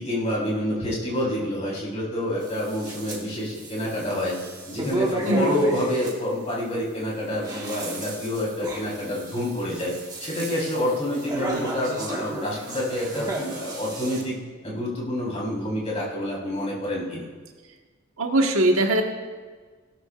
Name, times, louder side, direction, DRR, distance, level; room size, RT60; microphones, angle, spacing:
voice 1, 0.0-4.4 4.7-9.9 10.2-14.3 14.6-17.2, left 1 dB, 30° left, -5 dB, 3.9 m, -28 dB
sound 1, 2.4-3.2 3.5-6.1 7.2-14.2, right 1 dB, 20° right, 1.5 m, -34 dB
voice 2, 5.2-5.6 18.2-19.0, right 1 dB, 85° right, 2 dB, 1.4 m, -21 dB
16.5 x 12.5 x 2.5 m, 1.4 s
head